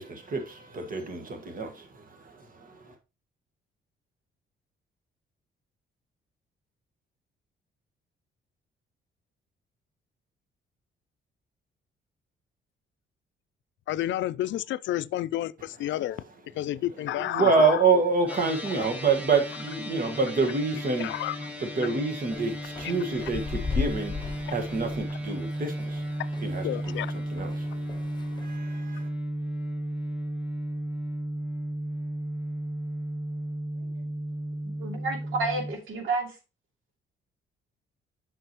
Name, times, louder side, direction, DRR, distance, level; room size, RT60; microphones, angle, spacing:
voice 1, 0.0-2.9 17.1-21.1 21.6-29.1, right 4 dB, 45° right, 1.6 m, -28 dB
voice 2, 13.9-16.2 16.5-17.8 18.8-18.9 21.0-21.4 24.5-24.6 26.6-27.2, left 14 dB, 70° left, 0.4 m, -30 dB
sound 1, 18.3-35.7, right 1 dB, 10° right, 1.5 m, -34 dB
sound 2, 22.3-27.1 27.4-28.5, left 5 dB, 20° left, 0.6 m, -36 dB
voice 3, 34.8-36.4, right 3 dB, 80° right, 2.8 m, -31 dB
7.9 x 6.1 x 3.0 m
cardioid pair, 90°, 20 cm